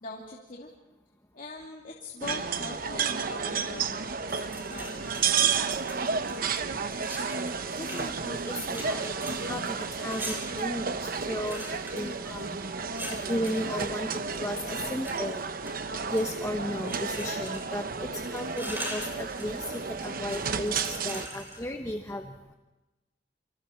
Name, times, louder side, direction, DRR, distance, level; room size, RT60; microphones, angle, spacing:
voice 1, 0.0-0.7 1.3-5.0, left 2 dB, 50° left, -3 dB, 2.6 m, -42 dB
sound 1, 2.2-21.3, right 5 dB, 55° right, 0.9 m, -32 dB
sound 2, 4.1-6.4 6.9-13.7 14.3-15.2 15.6-16.4 16.9-17.8 18.1-21.6, right 1 dB, 10° right, 6.3 m, -42 dB
voice 2, 7.8-12.6 13.3-14.1 14.4-15.4 16.1-19.6 20.0-22.2, left 1 dB, 15° left, 4 dB, 1.1 m, -34 dB
29.0 x 25.5 x 4.5 m, 1.1 s
head